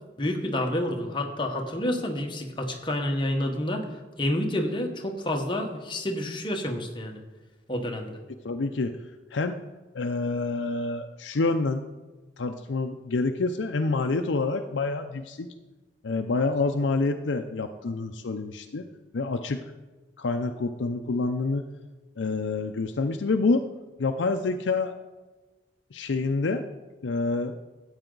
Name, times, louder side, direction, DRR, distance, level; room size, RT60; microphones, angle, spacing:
voice 1, 0.2-7.2 7.7-8.2, left 1 dB, 25° left, 3 dB, 1.2 m, -29 dB
voice 2, 8.4-8.9 9.3-9.6 9.9-11.9 12.4-15.5 16.0-18.9 19.1-19.6 20.2-21.7 22.2-23.6 24.0-24.9 25.9-26.6 27.0-27.6, left 3 dB, 90° left, 6 dB, 0.6 m, -27 dB
13.5 x 8.9 x 3.9 m, 1.2 s
head